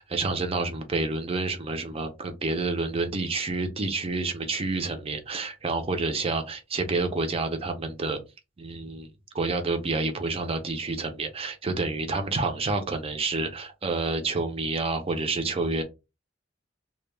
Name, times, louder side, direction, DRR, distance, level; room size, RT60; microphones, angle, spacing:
voice 1, 0.0-8.2 8.6-9.1 9.3-15.8, right 3 dB, 30° right, 0.5 m, -29 dB
2.1 x 2.1 x 3.1 m
head